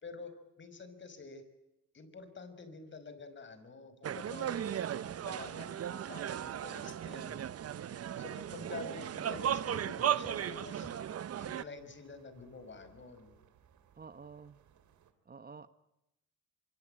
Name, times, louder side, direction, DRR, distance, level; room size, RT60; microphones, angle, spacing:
voice 1, 0.0-1.4 1.9-4.9 5.2-7.4 8.2-10.9 11.4-13.4, left 4 dB, 40° left, 11 dB, 5.5 m, -48 dB
sound 1, 4.0-11.6, right 10 dB, 55° right, 1.0 m, -36 dB
sound 2, 6.2-15.1, right 9 dB, 70° right, 3.2 m, -66 dB
voice 2, 14.0-14.6 15.2-15.7, right 5 dB, 30° right, 12 dB, 1.2 m, -50 dB
24.5 x 24.5 x 8.9 m, 0.90 s
cardioid pair, 90°, 30 cm